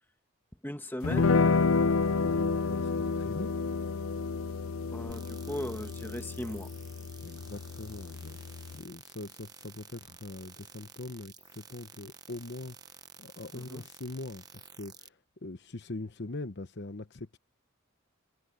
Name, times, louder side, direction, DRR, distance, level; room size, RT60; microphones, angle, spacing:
voice 1, 0.6-1.4 4.9-6.7 13.5-13.8, left 1 dB, 10° left, 1.4 m, -38 dB
sound 1, 1.0-8.8, left 4 dB, 70° left, 0.6 m, -30 dB
voice 2, 2.2-3.6 7.2-17.4, left 2 dB, 50° left, 1.0 m, -42 dB
sound 2, 5.1-15.1, right 6 dB, 15° right, 0.9 m, -52 dB
head